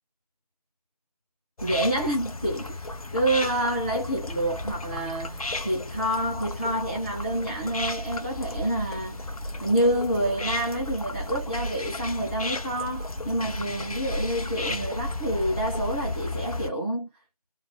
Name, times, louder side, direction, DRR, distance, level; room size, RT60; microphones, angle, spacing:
sound 1, 1.6-16.7, left 2 dB, 60° left, 0.6 m, -34 dB
voice 1, 1.6-2.8 3.1-9.3 9.6-17.1, right 1 dB, 15° right, 1.0 m, -28 dB
3.6 x 2.2 x 3.3 m
figure-of-eight pair, 170°, 21 cm